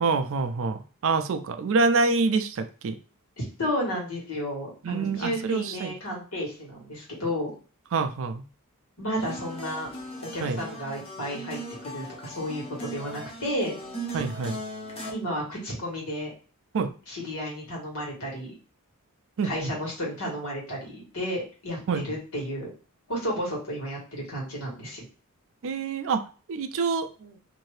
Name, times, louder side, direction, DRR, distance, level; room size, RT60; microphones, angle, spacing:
voice 1, 0.0-3.0 4.8-5.9 7.9-8.4 10.4-10.6 14.1-14.6 16.7-16.9 19.4-19.5 21.9-22.0 25.6-26.2 26.5-27.4, right 4 dB, 60° right, 8 dB, 0.4 m, -26 dB
voice 2, 3.4-7.5 9.0-9.9 10.3-13.7 15.1-16.3 17.1-18.5 19.4-21.8 22.0-22.7 23.1-25.1, equal, 70° left, -3 dB, 1.7 m, -32 dB
sound 1, 9.2-15.1, right 1 dB, 25° left, 0.6 m, -38 dB
2.7 x 2.6 x 3.1 m, 0.36 s
head